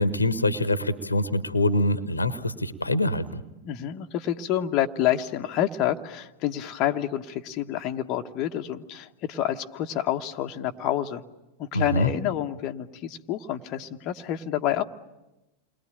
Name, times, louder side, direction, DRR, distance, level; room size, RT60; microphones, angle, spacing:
voice 1, 0.0-3.4 11.7-12.1, left 1 dB, 80° left, 13 dB, 1.3 m, -24 dB
voice 2, 3.6-11.2 11.6-14.8, left 12 dB, 35° left, 5 dB, 1.2 m, -28 dB
29.0 x 21.5 x 9.0 m, 1.0 s
figure-of-eight pair, 90°, 0 cm